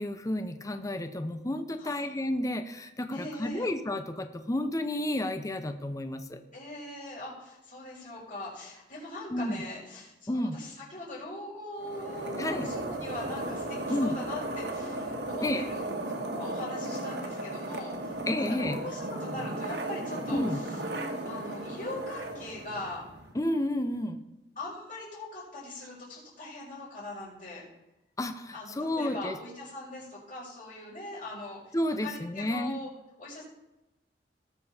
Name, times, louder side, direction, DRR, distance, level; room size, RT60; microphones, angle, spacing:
voice 1, 0.0-6.4 9.3-9.6 10.3-10.6 12.4-12.7 13.9-14.1 15.4-15.6 18.3-18.8 20.3-20.6 23.3-24.2 28.2-29.4 31.7-32.8, left 1 dB, 20° left, 8 dB, 0.6 m, -31 dB
voice 2, 1.8-2.1 3.1-3.7 6.5-15.8 16.2-20.8 21.2-23.0 24.6-27.6 28.5-32.9 33.2-33.4, left 2 dB, 50° left, -10 dB, 5.2 m, -41 dB
sound 1, 11.8-23.3, right 1 dB, 70° right, 1.6 m, -36 dB
18.5 x 6.8 x 4.3 m, 0.97 s
head